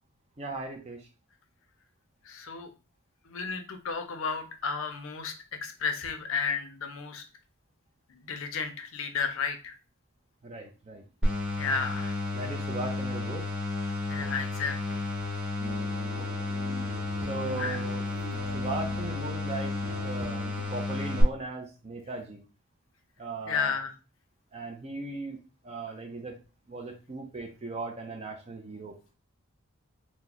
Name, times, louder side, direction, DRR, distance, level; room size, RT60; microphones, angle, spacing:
voice 1, 0.4-1.1 10.4-11.0 12.3-13.5 16.2-16.5 17.3-18.0 18.5-19.8 20.0-22.4 23.2-23.7 24.5-25.4 25.6-26.4 26.7-28.9, right 3 dB, 30° right, 3 dB, 0.4 m, -38 dB
voice 2, 2.2-2.7 3.2-5.3 5.6-7.2 8.1-9.8 11.6-12.2 14.1-15.0 17.6-17.8 23.5-23.9, left 5 dB, 65° left, 7 dB, 0.5 m, -33 dB
sound 1, 11.2-21.2, left 2 dB, 5° right, 0.8 m, -32 dB
sound 2, 15.6-20.6, equal, 70° right, 0.6 m, -44 dB
2.9 x 2.1 x 3.7 m, 0.34 s
head